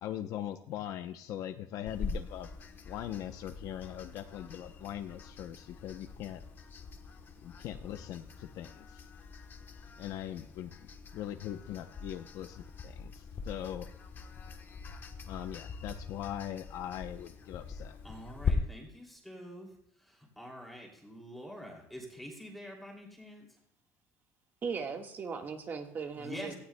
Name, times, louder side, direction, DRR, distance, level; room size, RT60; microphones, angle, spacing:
voice 1, 0.0-2.5 2.9-6.4 7.4-9.0 10.0-10.7 11.1-13.9 15.3-18.0, left 11 dB, 60° left, 7 dB, 0.7 m, -41 dB
sound 1, 1.9-18.5, left 6 dB, 30° left, 1.1 m, -43 dB
voice 2, 18.0-19.7 20.0-23.5 26.2-26.5, equal, ahead, -1 dB, 2.7 m, -46 dB
voice 3, 24.6-26.5, right 5 dB, 30° right, 3 dB, 1.5 m, -38 dB
17.5 x 15.0 x 2.2 m, 0.78 s
cardioid pair, 160°, 7 cm